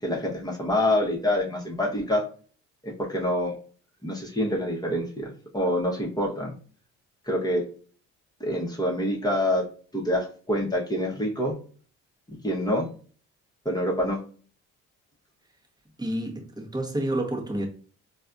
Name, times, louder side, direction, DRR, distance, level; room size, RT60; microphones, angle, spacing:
voice 1, 0.0-2.3 2.8-3.6 4.0-6.5 7.3-7.6 8.4-9.7 9.9-11.6 12.3-12.9 13.6-14.2, left 1 dB, 10° left, 1.1 m, -26 dB
voice 2, 16.0-17.7, right 1 dB, 10° right, 1.0 m, -29 dB
4.1 x 2.4 x 2.5 m
supercardioid pair, 55°, 35 cm